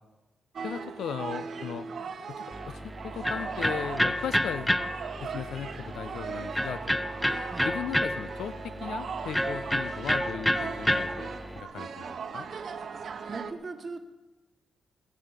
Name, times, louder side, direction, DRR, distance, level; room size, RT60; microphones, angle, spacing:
voice 1, 0.6-1.9 2.3-4.8 5.2-7.0 7.6-11.3 11.5-12.5, left 8 dB, 80° left, 13 dB, 0.7 m, -37 dB
sound 1, 0.6-13.5, right 5 dB, 50° right, 1.0 m, -39 dB
Electric guitar, 2.5-11.6, equal, 5° left, 0.5 m, -30 dB
voice 2, 13.3-14.0, right 3 dB, 30° right, 6 dB, 1.3 m, -39 dB
18.5 x 7.6 x 8.3 m, 1.1 s
wide cardioid pair, 150°, 0 cm